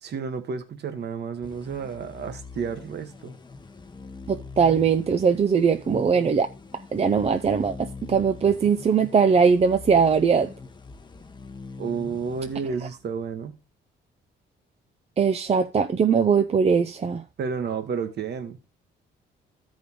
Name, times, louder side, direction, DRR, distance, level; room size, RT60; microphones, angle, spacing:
voice 1, 0.0-3.3 11.8-13.6 17.4-18.6, right 6 dB, 55° right, 1.3 m, -31 dB
sound 1, 1.4-13.3, left 4 dB, 20° left, 0.9 m, -43 dB
voice 2, 4.3-6.5 6.9-10.5 15.2-17.2, right 6 dB, 30° right, 0.5 m, -20 dB
12.5 x 5.2 x 3.7 m
cardioid pair, 90°, 20 cm